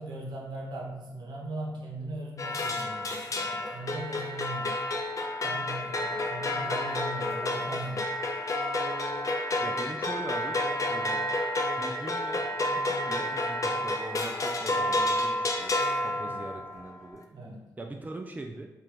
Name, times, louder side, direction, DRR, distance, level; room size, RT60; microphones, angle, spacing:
voice 1, 0.0-4.8 5.4-8.1 16.2-16.3 17.3-17.6, right 2 dB, 75° right, -1 dB, 0.9 m, -39 dB
sound 1, 2.4-16.8, left 1 dB, 45° left, 0.6 m, -30 dB
voice 2, 9.6-10.6 10.9-11.3 11.8-15.8 16.0-17.3 17.8-18.7, right 2 dB, 20° right, 3 dB, 0.4 m, -41 dB
3.4 x 2.5 x 4.5 m, 0.98 s
supercardioid pair, 50°, 7 cm